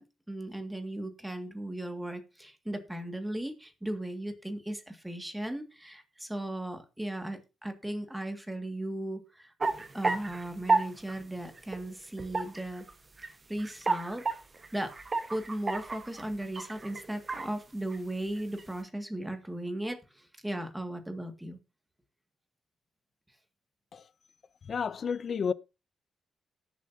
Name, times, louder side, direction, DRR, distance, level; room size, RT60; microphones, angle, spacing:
voice 1, 0.0-9.5 9.9-12.8 13.2-14.2 14.7-14.9 15.3-21.6, right 1 dB, 10° right, 1.9 m, -37 dB
sound 1, 9.6-10.8 11.1-11.2 11.6-11.8 12.2-12.9 13.2-13.3 13.6-17.5 17.9-18.0 18.4-18.6, right 3 dB, 35° right, 1.2 m, -31 dB
voice 2, 24.7-25.5, left 6 dB, 55° left, 0.5 m, -31 dB
18.5 x 7.2 x 2.7 m
cardioid pair, 85°, 0 cm